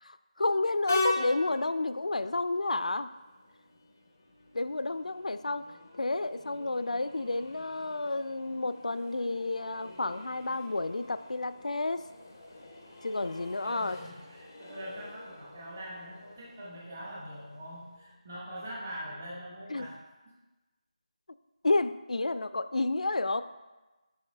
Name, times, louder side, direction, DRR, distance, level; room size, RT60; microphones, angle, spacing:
voice 1, 0.0-3.1 4.5-5.6 6.0-12.0 13.0-14.0 19.7-19.9 21.6-23.4, left 2 dB, 80° left, 12 dB, 0.3 m, -30 dB
Train, 0.9-18.1, left 2 dB, 15° left, 0.4 m, -42 dB
voice 2, 13.6-20.0 20.2-20.3, equal, 15° right, -6 dB, 0.9 m, -43 dB
7.1 x 5.4 x 3.3 m, 1.2 s
figure-of-eight pair, 180°, 4 cm